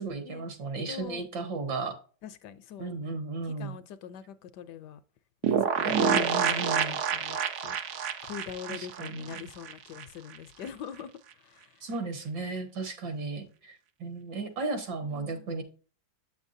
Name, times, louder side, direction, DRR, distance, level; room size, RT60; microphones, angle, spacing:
voice 1, 0.0-2.0 2.8-3.7 5.8-7.0 8.7-9.5 11.8-15.6, right 3 dB, 65° right, 2.2 m, -35 dB
voice 2, 0.9-1.3 2.2-3.0 3.4-5.0 5.4-11.9 15.1-15.5, left 9 dB, 70° left, 1.1 m, -44 dB
sound 1, 5.4-10.0 10.3-10.4 10.6-10.7, right 7 dB, 85° right, 0.6 m, -28 dB
8.3 x 7.2 x 2.6 m
omnidirectional pair, 2.1 m